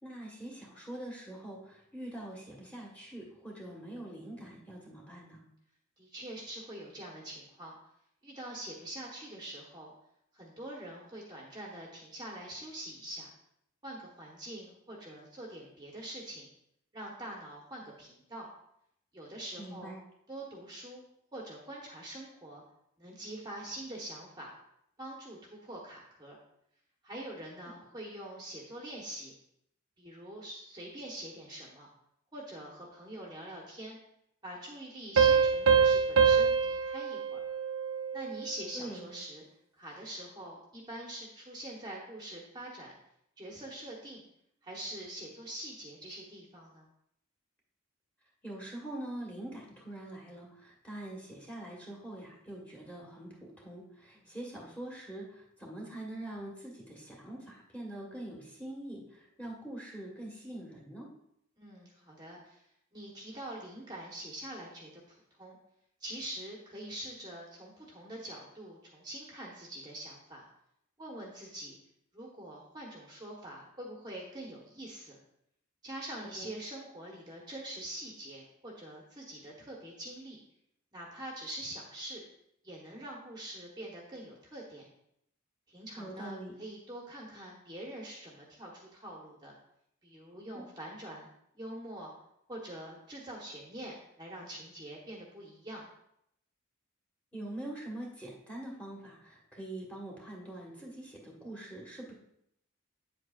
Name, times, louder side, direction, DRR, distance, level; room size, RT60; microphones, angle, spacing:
voice 1, 0.0-5.4 19.6-20.0 38.7-39.1 48.4-61.1 76.3-76.5 85.9-86.5 90.5-90.7 97.3-102.1, right 1 dB, 5° left, -3 dB, 1.6 m, -44 dB
voice 2, 6.0-7.7 8.2-9.9 10.3-13.3 13.8-16.5 16.9-18.5 19.1-20.0 20.3-21.1 21.3-22.6 23.0-24.5 25.0-26.4 27.0-29.3 30.0-31.9 32.3-34.0 34.4-37.4 38.1-39.5 39.8-42.9 43.4-44.2 44.6-46.9 54.1-54.3 61.6-62.6 62.9-65.6 66.0-70.5 71.0-71.8 72.1-75.2 75.8-80.4 80.9-82.2 82.6-84.9 85.7-89.5 90.0-91.3 91.5-92.1 92.5-95.9, right 1 dB, 20° right, -2 dB, 1.2 m, -44 dB
sound 1, 35.2-38.5, right 6 dB, 65° right, 0.8 m, -25 dB
9.2 x 7.7 x 2.5 m, 0.75 s
head